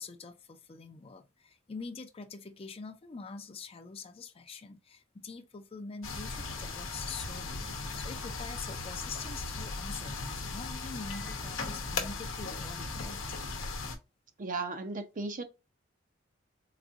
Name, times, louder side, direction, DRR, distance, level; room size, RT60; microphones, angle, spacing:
voice 1, 0.0-13.2, left 4 dB, 30° left, 0.5 m, -45 dB
sound 1, 6.0-14.0, left 3 dB, 80° left, 0.8 m, -37 dB
voice 2, 14.4-15.4, right 3 dB, 40° right, 0.6 m, -35 dB
4.0 x 2.6 x 2.4 m
head